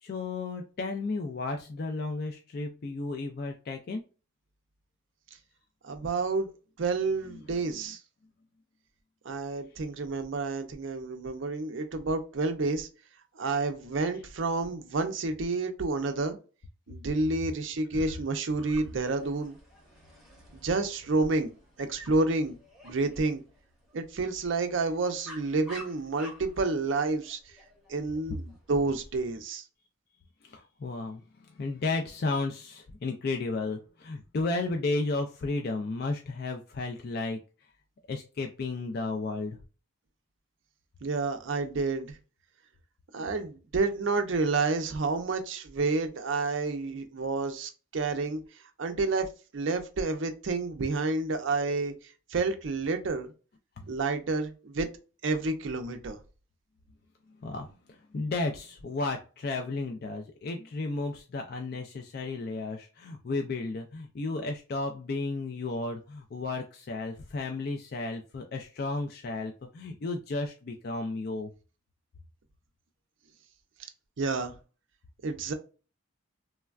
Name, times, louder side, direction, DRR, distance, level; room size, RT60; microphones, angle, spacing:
voice 1, 0.0-4.0 17.9-18.1 30.4-37.4 38.1-39.6 53.8-54.0 57.4-71.5, left 3 dB, 45° left, 0.3 m, -33 dB
voice 2, 5.8-6.5 6.8-8.0 9.3-12.9 13.4-16.4 16.9-19.6 20.6-21.5 21.8-22.6 22.8-23.4 23.9-27.4 27.9-29.6 41.0-42.2 43.1-48.4 48.8-49.3 49.5-51.9 52.3-53.3 53.9-54.9 55.2-56.2 74.2-74.5 75.2-75.5, right 3 dB, 60° right, 0.5 m, -29 dB
Dog, 18.5-29.1, right 1 dB, ahead, 1.0 m, -51 dB
3.2 x 2.2 x 2.3 m
head